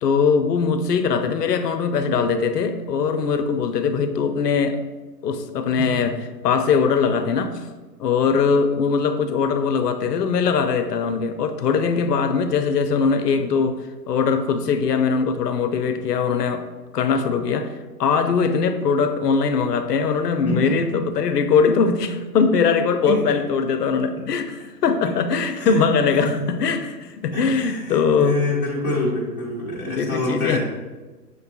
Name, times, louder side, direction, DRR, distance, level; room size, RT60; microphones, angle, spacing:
voice 1, 0.0-4.8 5.2-6.2 6.4-7.7 8.0-16.7 16.9-28.4 29.9-30.6, left 5 dB, 75° left, 9 dB, 0.5 m, -21 dB
voice 2, 20.5-21.0 23.1-23.2 25.5-25.9 26.2-26.3 27.3-30.6, left 1 dB, 15° left, -8 dB, 0.4 m, -26 dB
6.4 x 2.2 x 2.7 m, 1.2 s
hypercardioid pair, 135°, 49 cm